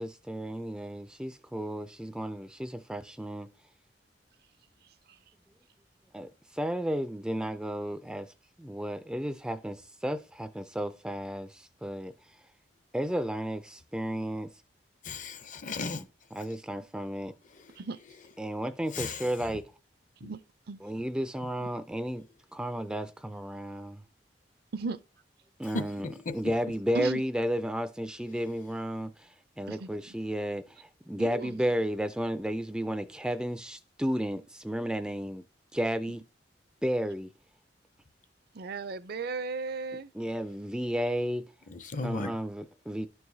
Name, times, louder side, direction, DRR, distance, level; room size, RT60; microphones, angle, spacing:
voice 1, 0.0-3.5 6.1-8.3 8.6-12.4 12.9-14.5 15.8-16.0 16.3-17.3 18.4-19.6 20.8-22.2 22.5-24.0 25.6-26.1 26.3-35.4 35.7-36.2 36.8-37.3 40.1-41.4 42.0-43.1, equal, 5° right, 0.3 m, -33 dB
voice 2, 15.0-16.0 16.4-16.5 17.5-17.8 18.9-19.3 20.2-20.3 21.6-21.7 25.7-26.5 41.7-42.4, left 3 dB, 45° left, 0.6 m, -36 dB
voice 3, 31.2-31.6 38.5-40.1, right 4 dB, 60° right, 0.5 m, -35 dB
11.5 x 4.7 x 2.7 m
head